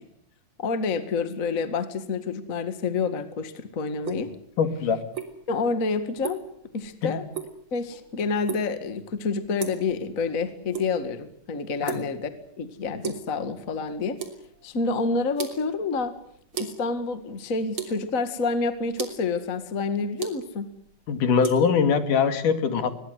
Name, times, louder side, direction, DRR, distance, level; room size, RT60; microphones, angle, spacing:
voice 1, 0.6-4.3 5.5-6.4 6.7-7.3 7.7-12.3 12.6-14.2 14.6-16.1 16.6-20.7, left 4 dB, 30° left, 10 dB, 1.8 m, -28 dB
sound 1, 3.9-21.5, right 7 dB, 40° right, 3.9 m, -39 dB
voice 2, 4.6-5.0 7.0-7.1 11.8-12.0 21.1-23.0, left 6 dB, 80° left, 9 dB, 3.8 m, -22 dB
23.5 x 22.0 x 8.2 m, 0.68 s
omnidirectional pair, 3.6 m